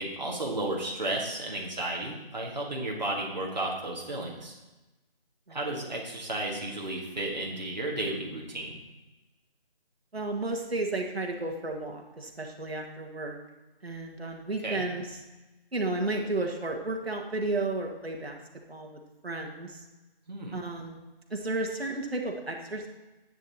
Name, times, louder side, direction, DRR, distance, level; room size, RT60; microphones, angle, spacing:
voice 1, 0.0-4.5 5.5-8.7 14.6-14.9 20.3-20.6, right 1 dB, 45° right, -2 dB, 1.6 m, -33 dB
voice 2, 10.1-13.4 13.8-15.2 15.7-18.4 18.7-19.8 20.5-21.0 21.3-22.9, right 2 dB, 80° right, 1 dB, 1.7 m, -33 dB
10.5 x 9.1 x 2.9 m, 1.1 s
figure-of-eight pair, 180°, 30 cm